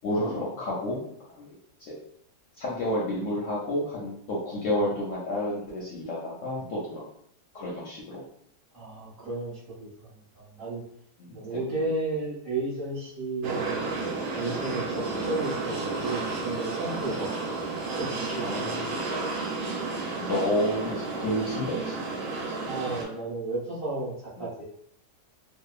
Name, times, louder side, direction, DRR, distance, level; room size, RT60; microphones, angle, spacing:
voice 1, 0.0-1.0 1.4-1.5 1.8-2.0 2.6-7.1 7.5-8.2 11.2-11.6 15.1-15.3 18.4-18.9 19.6-22.0 24.4-24.5, left 1 dB, 65° left, -5 dB, 0.8 m, -30 dB
voice 2, 8.7-10.1 10.5-10.8 11.3-13.8 14.3-17.4 18.0-18.5 22.6-24.1 24.4-24.6, right 2 dB, 45° right, -9 dB, 0.9 m, -33 dB
sound 1, 13.4-23.0, right 3 dB, 70° right, 1.0 m, -32 dB
2.8 x 2.0 x 2.3 m, 0.68 s
omnidirectional pair, 1.7 m